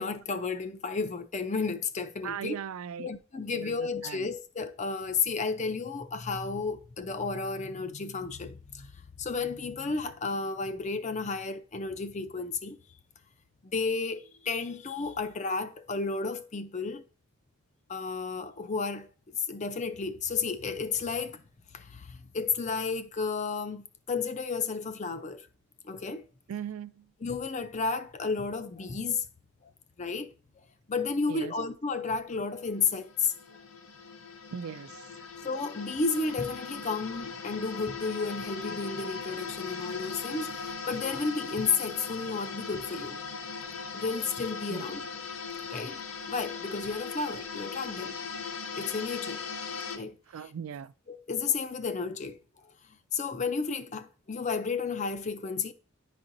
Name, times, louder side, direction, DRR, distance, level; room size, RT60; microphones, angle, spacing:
voice 1, 0.0-2.6 3.0-8.9 9.2-12.8 13.7-17.0 17.9-19.1 19.3-21.4 21.7-25.5 25.8-26.2 27.2-29.2 30.0-30.3 30.9-33.3 35.4-43.2 43.9-45.0 45.7-46.0 46.3-48.2 48.8-49.4 49.9-50.2 51.1-52.4 53.1-55.7, left 4 dB, 35° left, 0.5 m, -32 dB
voice 2, 2.2-3.1 3.4-4.3 26.5-27.1 31.3-31.5 34.5-35.3 44.7-44.9 50.3-50.9, right 8 dB, 75° right, 0.3 m, -39 dB
sound 1, 32.3-50.0, left 5 dB, 85° left, 0.8 m, -39 dB
10.5 x 4.2 x 2.6 m
head